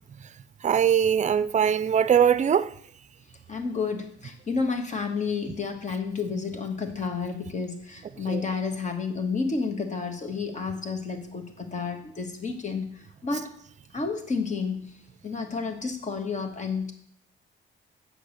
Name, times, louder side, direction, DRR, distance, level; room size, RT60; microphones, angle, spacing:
voice 1, 0.6-2.7 8.3-8.4, right 8 dB, 35° right, 0.5 m, -21 dB
voice 2, 3.5-12.9 13.2-13.5 13.9-15.0 15.2-16.9, left 4 dB, 35° left, 1.6 m, -30 dB
7.8 x 5.9 x 6.5 m
cardioid pair, 90°, 20 cm